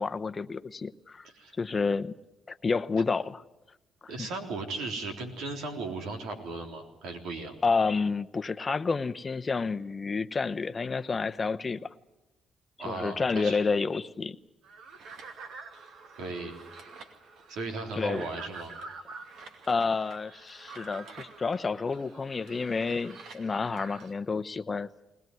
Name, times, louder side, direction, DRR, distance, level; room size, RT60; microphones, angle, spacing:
voice 1, 0.0-1.3 1.6-2.1 2.5-3.4 4.0-4.1 7.6-11.9 12.8-14.4 17.9-18.2 19.7-25.0, left 4 dB, 30° left, 12 dB, 0.9 m, -29 dB
voice 2, 4.1-7.5 12.8-13.6 16.2-16.5 17.5-18.7, right 3 dB, 85° right, 4 dB, 3.7 m, -36 dB
sound 1, 14.6-24.1, right 4 dB, 70° right, 2.5 m, -47 dB
21.5 x 20.0 x 9.4 m, 0.97 s
cardioid pair, 90°, 0 cm